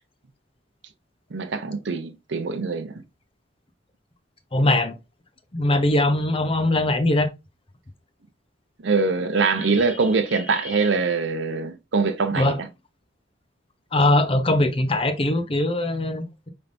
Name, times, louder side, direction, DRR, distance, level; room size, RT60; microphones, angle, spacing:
voice 1, 1.3-2.9 8.8-12.5, right 4 dB, 70° right, 0.7 m, -23 dB
voice 2, 4.5-5.0 5.5-7.3 12.3-12.6 13.9-16.5, left 1 dB, 30° left, 0.7 m, -21 dB
5.4 x 3.4 x 2.6 m
head